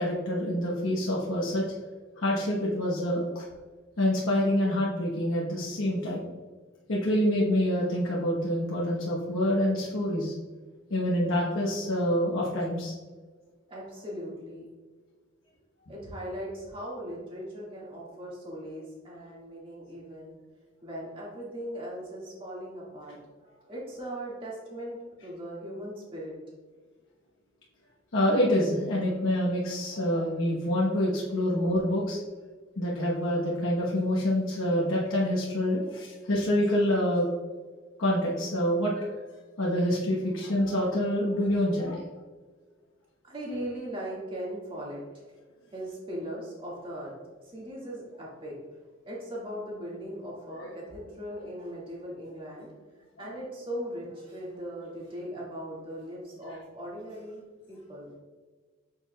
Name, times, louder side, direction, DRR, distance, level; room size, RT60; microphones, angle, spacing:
voice 1, 0.0-1.6 2.2-3.5 4.0-6.3 6.9-10.3 10.9-12.9 28.1-32.2 32.8-37.3 38.0-39.2 39.6-42.0 53.3-53.4, left 1 dB, 75° left, -4 dB, 1.0 m, -26 dB
voice 2, 13.7-14.7 15.9-20.4 20.8-26.3 31.3-31.4 43.2-45.3 45.7-47.1 47.4-48.6 49.1-52.7 53.2-58.1, equal, 25° right, -4 dB, 1.9 m, -39 dB
7.3 x 6.6 x 2.3 m, 1.4 s
head